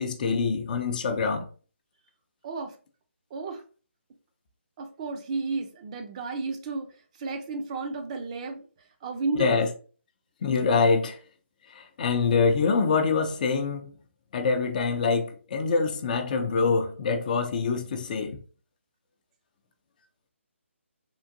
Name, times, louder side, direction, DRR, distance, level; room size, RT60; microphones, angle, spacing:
voice 1, 0.0-1.5 9.4-9.7 10.4-11.2 11.7-13.9 14.3-18.4, left 4 dB, 40° left, 0.5 m, -25 dB
voice 2, 2.4-2.7 3.3-3.6 4.8-6.9 7.2-8.6 9.0-9.6, right 3 dB, 30° right, 0.5 m, -32 dB
3.7 x 2.5 x 2.6 m
figure-of-eight pair, 150°, 7 cm